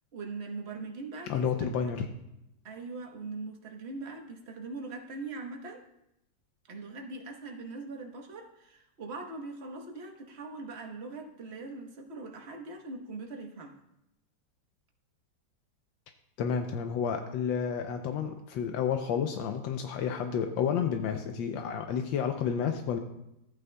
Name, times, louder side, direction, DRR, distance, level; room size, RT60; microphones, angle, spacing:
voice 1, 0.1-1.5 1.7-1.9 2.6-5.8 6.7-13.8, right 3 dB, 40° right, 1 dB, 1.1 m, -41 dB
voice 2, 1.3-2.1 16.4-23.0, left 7 dB, 80° left, 6 dB, 1.4 m, -30 dB
13.5 x 8.9 x 2.3 m, 0.84 s
omnidirectional pair, 2.1 m